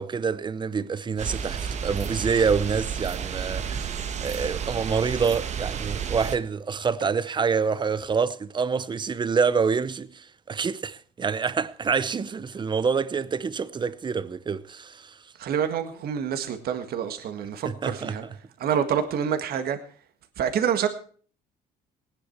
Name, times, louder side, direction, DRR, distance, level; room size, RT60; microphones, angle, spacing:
voice 1, 0.0-15.2 17.6-18.1, right 5 dB, 25° right, 0.7 m, -27 dB
sound 1, 1.2-6.4, right 7 dB, 45° right, 1.1 m, -31 dB
voice 2, 15.4-18.2 18.6-19.8 20.4-20.9, right 8 dB, 65° right, 1.8 m, -27 dB
18.5 x 10.0 x 4.6 m
cardioid pair, 110°, 17 cm